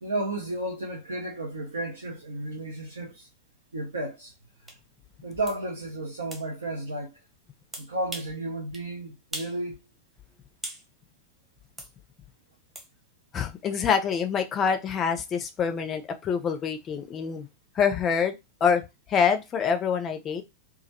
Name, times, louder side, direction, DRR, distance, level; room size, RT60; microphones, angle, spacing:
voice 1, 0.0-3.3 3.7-4.3 5.2-7.2 7.8-9.8, right 2 dB, 70° right, 0.5 m, -33 dB
sound 1, 4.7-4.8 5.5-5.6 6.3-6.5 7.7-8.4 8.7-8.9 9.3-9.6 9.9-10.9 11.8-11.9 12.7-12.9, right 1 dB, 5° right, 0.8 m, -39 dB
voice 2, 13.3-17.5 17.7-18.4 18.6-20.4, left 6 dB, 25° left, 0.4 m, -26 dB
2.3 x 2.1 x 2.8 m
figure-of-eight pair, 90°, 0 cm